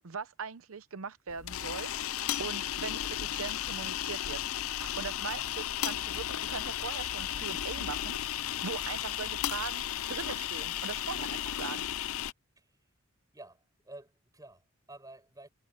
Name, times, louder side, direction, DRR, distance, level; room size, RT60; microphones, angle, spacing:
voice 1, 0.0-1.9 2.2-4.4 4.8-8.2 8.6-11.8, right 5 dB, 80° right, 0.7 m, -40 dB
sound 1, 1.3-12.3, left 11 dB, 80° left, 0.5 m, -34 dB
voice 2, 12.6-12.9 13.3-15.5, right 2 dB, 15° right, 7.9 m, -51 dB
head